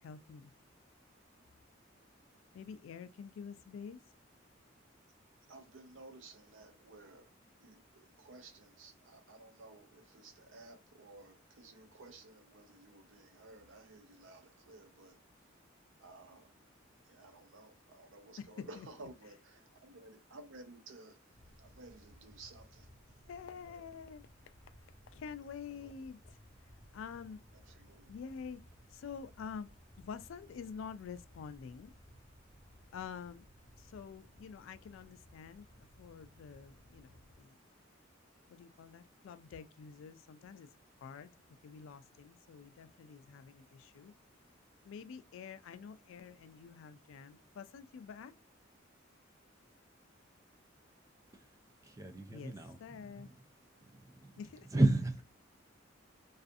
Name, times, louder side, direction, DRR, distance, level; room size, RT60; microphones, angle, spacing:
voice 1, 0.0-0.5 2.5-4.0 23.3-24.2 25.1-26.4 26.9-27.4 28.1-28.6 28.9-29.7 30.0-31.9 32.9-33.5 33.8-37.6 38.5-40.7 41.0-41.3 41.6-44.1 44.8-48.3 52.3-52.5 52.8-53.3 54.4-54.7, left 6 dB, 85° left, 0.3 m, -48 dB
voice 2, 5.5-7.3 7.6-15.5 16.0-16.5 17.0-22.9 23.5-23.8 25.4-25.9 27.5-28.1, right 2 dB, 75° right, 0.6 m, -55 dB
sound 1, 21.3-37.4, equal, 35° left, 0.8 m, -60 dB
voice 3, 51.9-52.8 53.2-53.3 54.2-54.3 54.7-55.2, right 2 dB, 15° right, 0.3 m, -31 dB
2.4 x 2.4 x 2.5 m
head